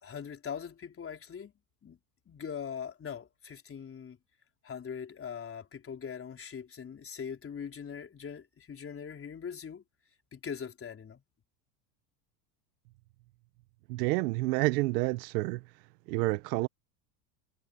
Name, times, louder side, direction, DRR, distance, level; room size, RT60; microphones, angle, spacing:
voice 1, 0.0-1.5 1.8-2.0 2.3-4.2 4.6-9.8 10.3-11.2, left 7 dB, 25° left, 4.1 m, -41 dB
voice 2, 13.9-15.6 16.1-16.7, right 22 dB, 75° right, 1.1 m, -29 dB
supercardioid pair, 110°, 49 cm